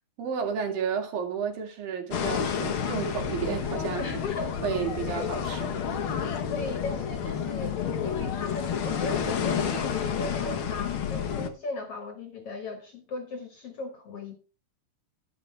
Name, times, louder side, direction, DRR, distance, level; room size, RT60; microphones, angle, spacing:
voice 1, 0.2-4.1 4.6-5.8, right 7 dB, 75° right, 3.8 m, -32 dB
sound 1, 2.1-11.5, left 7 dB, 70° left, 1.2 m, -30 dB
voice 2, 4.0-4.6 5.1-5.3 6.5-14.4, left 3 dB, 55° left, 2.0 m, -37 dB
11.5 x 10.5 x 3.3 m
omnidirectional pair, 4.1 m